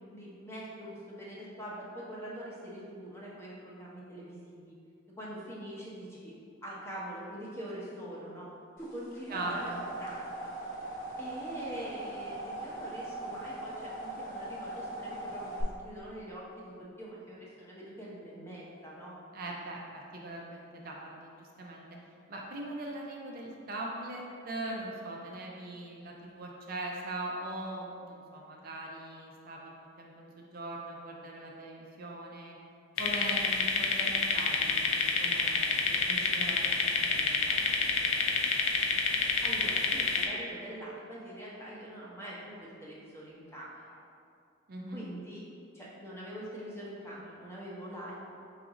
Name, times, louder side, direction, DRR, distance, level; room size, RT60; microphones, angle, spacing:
voice 1, 0.0-4.8 5.2-6.3 6.6-8.5 8.8-10.5 11.2-19.2 39.4-44.0 44.9-45.4 45.7-48.1, right 1 dB, 15° left, -6 dB, 0.7 m, -44 dB
sound 1, 8.9-15.6, right 1 dB, 45° left, 0.9 m, -40 dB
voice 2, 9.3-9.7 19.3-21.8 22.3-32.6 33.0-38.4 44.7-45.0, right 1 dB, 45° right, -1 dB, 0.4 m, -41 dB
sound 2, 33.0-40.3, left 5 dB, 80° left, 0.5 m, -28 dB
4.0 x 2.5 x 4.7 m, 2.4 s
head